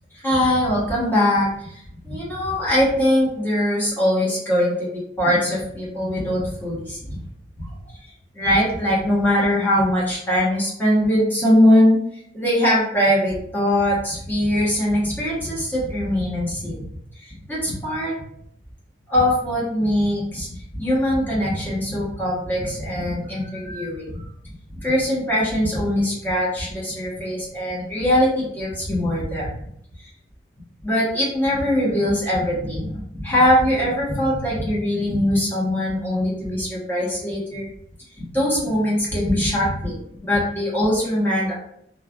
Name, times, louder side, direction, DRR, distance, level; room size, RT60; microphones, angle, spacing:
voice 1, 0.1-7.2 7.6-7.7 8.3-12.0 12.3-16.8 17.2-18.2 19.1-29.5 30.8-37.7 38.3-39.9 40.2-41.5, left 1 dB, 10° left, -7 dB, 1.0 m, -21 dB
3.2 x 2.3 x 2.3 m, 0.71 s
head